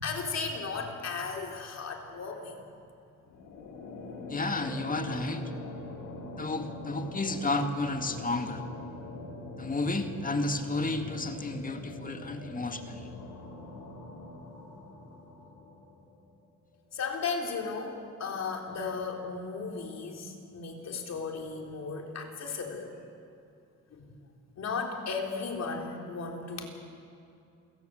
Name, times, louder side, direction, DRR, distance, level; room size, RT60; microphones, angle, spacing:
voice 1, 0.0-2.6 16.9-22.9 23.9-24.1 24.6-26.7, left 4 dB, 60° left, 2 dB, 3.8 m, -35 dB
sound 1, 3.2-16.4, left 2 dB, 80° left, 3.7 m, -43 dB
voice 2, 4.3-5.4 6.4-8.6 9.6-13.1, left 2 dB, 30° left, 6 dB, 2.1 m, -32 dB
28.0 x 18.0 x 7.7 m, 2.6 s
cardioid pair, 90°, 30 cm